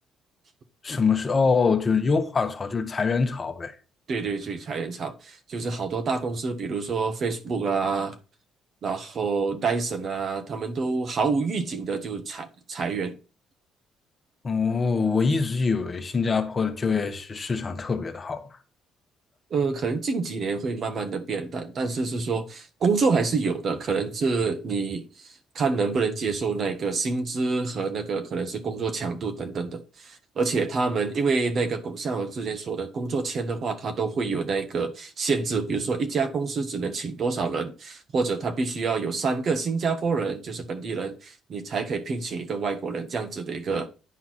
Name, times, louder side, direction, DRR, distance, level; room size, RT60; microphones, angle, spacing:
voice 1, 0.8-3.8 14.4-18.6, left 5 dB, 25° left, 1.3 m, -24 dB
voice 2, 4.1-8.2 8.8-13.2 19.5-25.0 25.5-43.9, right 4 dB, 45° right, 1.5 m, -27 dB
9.8 x 4.6 x 5.9 m
cardioid pair, 130°, 0 cm